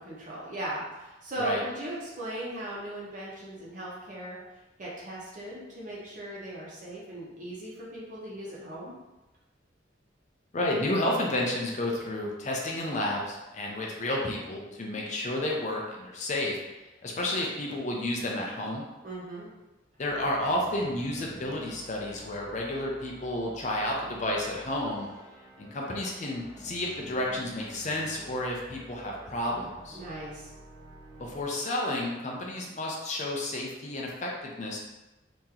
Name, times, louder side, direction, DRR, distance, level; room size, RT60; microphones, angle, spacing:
voice 1, 0.0-4.4 4.8-8.9 19.0-19.5 29.9-30.5, right 1 dB, 45° right, -6 dB, 1.1 m, -38 dB
voice 2, 10.5-16.6 17.0-18.9 20.0-25.1 25.6-30.0 31.2-34.8, left 1 dB, 40° left, -1 dB, 0.6 m, -31 dB
sound 1, 20.0-31.4, right 1 dB, 20° right, 0.6 m, -50 dB
2.9 x 2.8 x 3.7 m, 1.0 s
head